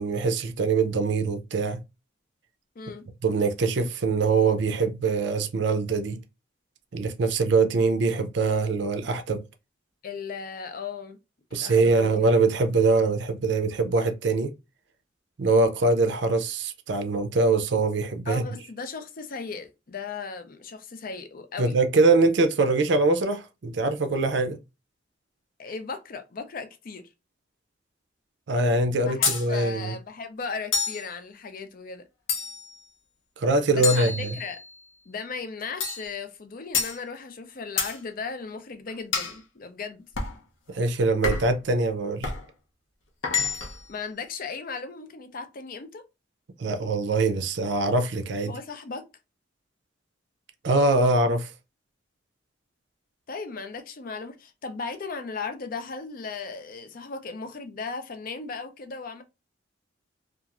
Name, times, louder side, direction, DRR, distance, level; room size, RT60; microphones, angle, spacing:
voice 1, 0.0-1.8 3.2-6.2 6.9-9.4 11.5-14.5 15.4-18.4 21.6-24.6 28.5-29.9 33.4-34.3 40.7-42.3 46.6-48.5 50.6-51.5, right 3 dB, 60° right, 0.5 m, -23 dB
voice 2, 2.8-3.1 10.0-11.2 11.5-12.4 18.3-21.8 25.6-27.1 29.0-32.0 33.7-34.6 35.1-40.0 43.9-46.0 48.4-49.1 53.3-59.2, left 4 dB, 45° left, 0.5 m, -36 dB
sound 1, 29.2-29.5 30.7-31.1 32.3-32.7 33.8-34.7 35.8-36.1 36.7-37.0 37.8-38.0 39.1-39.4 40.2-40.4 41.2-41.6 42.2-42.4 43.2-43.8, left 5 dB, 75° left, 0.7 m, -28 dB
2.9 x 2.4 x 2.4 m
head